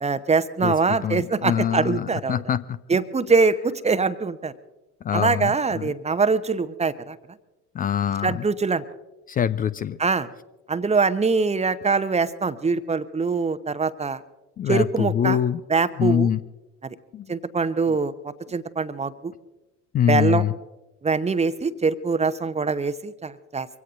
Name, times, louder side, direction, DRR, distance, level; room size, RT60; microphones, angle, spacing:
voice 1, 0.0-2.4 2.9-4.5 5.1-7.2 8.2-8.8 10.0-10.3 10.7-14.2 14.7-15.4 15.7-16.3 16.8-17.0 17.3-19.3 20.1-20.4 21.0-23.7, right 4 dB, 15° right, 12 dB, 0.8 m, -23 dB
voice 2, 0.6-2.8 5.0-5.9 7.7-8.4 9.3-10.0 14.6-15.6 16.0-16.4 17.1-17.2 19.9-20.5, left 9 dB, 20° left, 15 dB, 0.4 m, -24 dB
24.5 x 16.5 x 2.5 m, 1.1 s
figure-of-eight pair, 60°, 45 cm